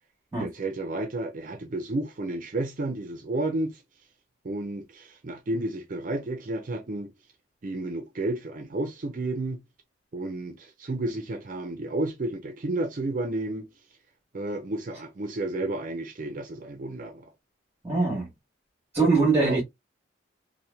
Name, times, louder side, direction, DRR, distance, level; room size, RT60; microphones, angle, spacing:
voice 1, 0.4-3.8 4.4-7.1 7.6-9.6 10.1-13.7 14.3-17.3 19.4-19.6, right 2 dB, 40° right, 0.4 m, -31 dB
voice 2, 17.8-18.3 18.9-19.6, right 3 dB, 15° right, 1.1 m, -22 dB
2.8 x 2.1 x 2.2 m
head